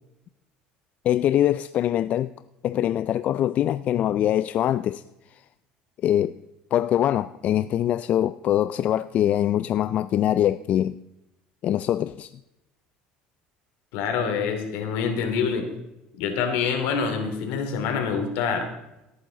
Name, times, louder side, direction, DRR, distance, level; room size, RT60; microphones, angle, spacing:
voice 1, 1.0-2.3 2.6-5.0 6.0-6.4 6.7-11.0 11.6-12.3, left 11 dB, 50° left, 14 dB, 0.4 m, -23 dB
voice 2, 13.9-15.7 16.1-18.7, left 6 dB, 80° left, 5 dB, 2.8 m, -26 dB
17.5 x 9.2 x 3.9 m, 0.91 s
supercardioid pair, 110°, 3 cm